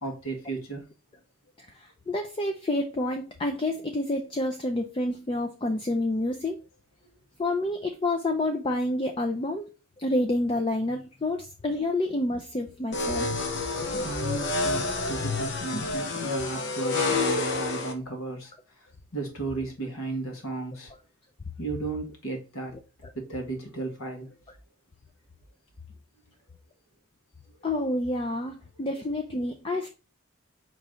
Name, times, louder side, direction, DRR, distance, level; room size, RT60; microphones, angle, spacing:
voice 1, 0.0-0.8 13.9-18.5 19.1-20.9 21.6-22.8 23.1-24.3, right 3 dB, 70° left, 1.7 m, -34 dB
voice 2, 1.7-6.6 7.4-9.6 10.0-13.3 27.6-29.9, left 1 dB, 25° left, 0.4 m, -28 dB
sound 1, 12.9-17.9, left 3 dB, 50° left, 0.7 m, -28 dB
4.7 x 3.1 x 3.6 m
head